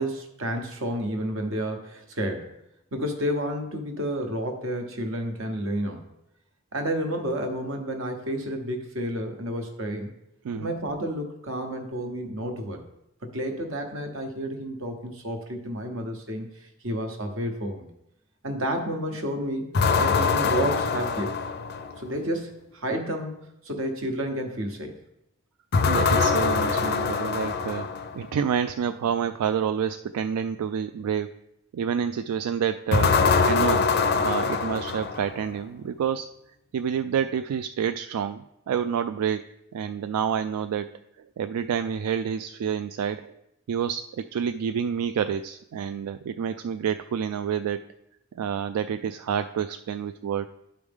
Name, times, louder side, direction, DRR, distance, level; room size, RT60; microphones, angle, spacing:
voice 1, 0.0-2.5 2.9-6.1 6.7-10.1 10.5-12.8 13.3-17.8 18.4-19.7 20.0-21.4 22.0-23.3 23.6-25.0, equal, 65° right, 4 dB, 1.2 m, -30 dB
voice 2, 10.4-10.8 25.9-27.9 28.1-31.3 31.7-33.2 33.4-36.3 36.7-39.4 39.7-40.9 41.4-43.4 43.7-47.8 48.4-50.5, right 8 dB, 90° right, 10 dB, 0.3 m, -28 dB
sound 1, 19.7-22.1 25.7-28.2 32.9-35.5, left 5 dB, 45° left, 0.4 m, -23 dB
11.5 x 4.8 x 3.6 m, 0.82 s
head